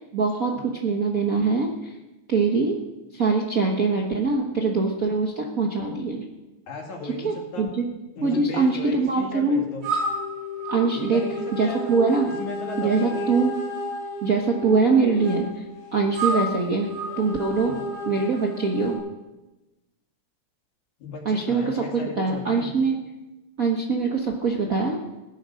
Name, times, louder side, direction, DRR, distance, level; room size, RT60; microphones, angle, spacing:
voice 1, 0.0-1.9 2.3-2.8 3.1-6.2 7.2-7.8 8.2-9.6 10.7-11.2 11.5-12.3 12.8-13.5 14.2-15.6 15.9-16.9 17.2-17.7 18.1-19.0 21.2-23.0 23.6-25.0, right 4 dB, 50° right, 1 dB, 1.0 m, -23 dB
voice 2, 6.7-7.7 8.2-9.8 10.9-12.0 12.2-13.4 17.6-17.8 21.0-22.7, left 3 dB, 75° left, 0 dB, 4.1 m, -36 dB
sound 1, 9.8-19.0, equal, 75° right, 8.7 m, -31 dB
18.0 x 10.5 x 6.4 m, 1.1 s
omnidirectional pair, 3.3 m